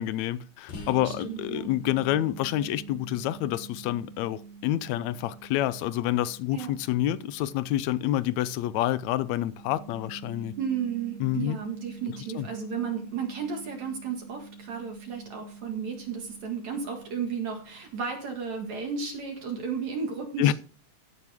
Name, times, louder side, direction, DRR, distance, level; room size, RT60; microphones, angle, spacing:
voice 1, 0.0-10.5 11.2-11.6 12.1-12.5 20.4-20.5, left 13 dB, 75° left, 1.7 m, -28 dB
sound 1, 0.7-18.2, right 4 dB, 55° left, 3.9 m, -46 dB
voice 2, 1.0-1.7 6.5-6.7 10.6-20.5, right 6 dB, 60° right, 3.1 m, -33 dB
16.0 x 7.5 x 3.6 m
omnidirectional pair, 3.9 m